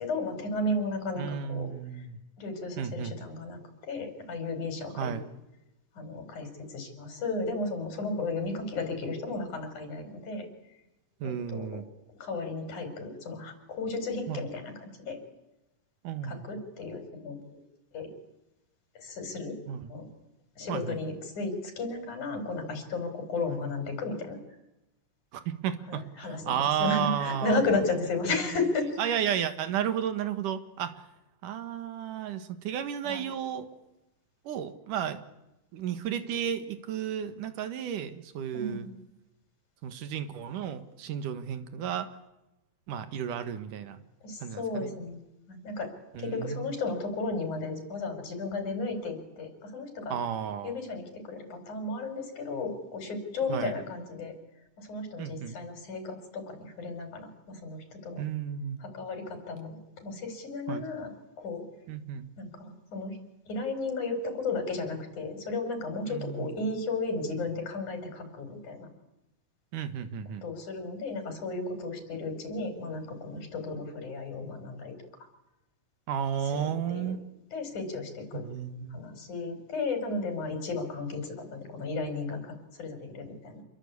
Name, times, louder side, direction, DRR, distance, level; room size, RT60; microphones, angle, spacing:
voice 1, 0.0-1.7 2.4-5.2 6.0-10.5 11.2-11.8 12.2-15.2 16.2-17.6 17.9-18.1 19.0-19.6 19.9-20.1 20.6-24.4 25.9-28.9 33.0-33.2 38.5-38.9 44.2-45.2 45.5-45.9 46.2-50.2 50.6-54.3 54.8-58.2 58.8-61.1 61.4-61.6 62.4-63.2 63.5-68.9 70.4-74.9 76.5-77.0 77.5-78.4 78.9-83.6, left 3 dB, 70° left, 5 dB, 6.1 m, -34 dB
voice 2, 1.2-2.2 2.8-3.1 5.0-5.2 11.2-11.8 14.3-14.4 16.0-16.4 19.7-19.9 20.7-21.0 23.4-23.6 25.3-27.6 28.2-28.4 29.0-31.0 31.4-33.7 34.4-35.2 35.7-38.9 39.8-42.1 42.9-44.0 44.4-44.9 46.1-46.7 50.1-50.8 53.5-53.7 55.2-55.5 58.2-58.8 60.7-60.9 61.9-62.3 66.1-66.6 69.7-70.4 76.1-77.2 78.3-79.0, right 9 dB, 85° right, 10 dB, 3.1 m, -33 dB
27.5 x 22.0 x 8.5 m, 0.94 s
omnidirectional pair, 3.6 m